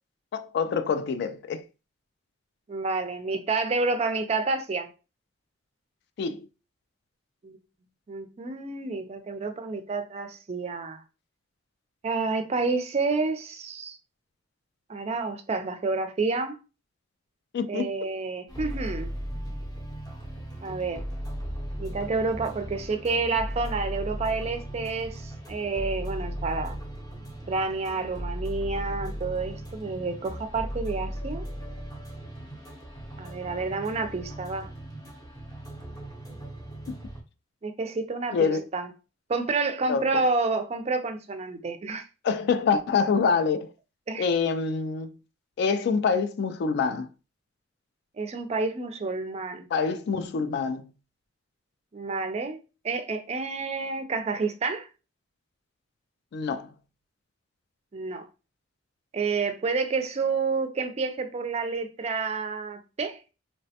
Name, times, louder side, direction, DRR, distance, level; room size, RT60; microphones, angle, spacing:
voice 1, 0.3-1.6 6.2-6.5 17.5-17.9 38.3-38.6 39.9-40.2 42.2-43.7 44.2-45.1 45.6-47.1 49.7-50.8 56.3-56.7, left 5 dB, 60° left, 0.3 m, -26 dB
voice 2, 2.7-4.9 7.4-7.6 8.1-11.0 12.0-14.0 14.9-16.6 17.7-19.1 20.6-21.0 21.8-26.8 27.5-31.4 33.2-34.7 37.6-38.9 39.3-42.0 44.1-44.3 48.2-49.7 51.9-52.6 52.8-54.9 57.9-58.3 59.1-63.2, right 4 dB, 35° right, 0.4 m, -29 dB
sound 1, 18.5-37.2, equal, 20° left, 0.6 m, -37 dB
3.1 x 2.1 x 2.7 m
head